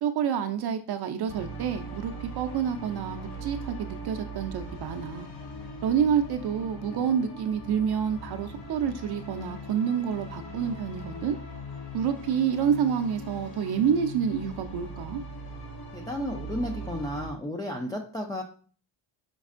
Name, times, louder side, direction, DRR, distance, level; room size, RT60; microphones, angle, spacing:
voice 1, 0.0-5.3 5.8-11.4 11.9-15.2, right 8 dB, 55° right, 0.5 m, -28 dB
sound 1, 1.3-17.3, equal, 50° left, 1.9 m, -40 dB
voice 2, 15.9-18.4, left 1 dB, 10° left, 0.3 m, -33 dB
5.2 x 4.1 x 2.4 m
cardioid pair, 135°, 47 cm